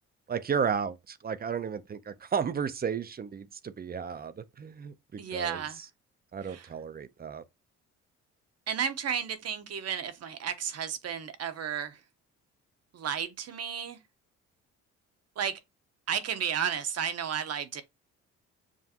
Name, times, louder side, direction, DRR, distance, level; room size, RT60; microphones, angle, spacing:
voice 1, 0.3-5.9 6.3-7.4, right 6 dB, 30° right, 0.6 m, -33 dB
voice 2, 5.2-5.8 6.5-6.7 8.7-12.0 12.9-14.0 15.4-15.6 16.1-17.8, right 8 dB, 55° right, 1.0 m, -33 dB
7.3 x 2.5 x 2.9 m
cardioid pair, 90°, 30 cm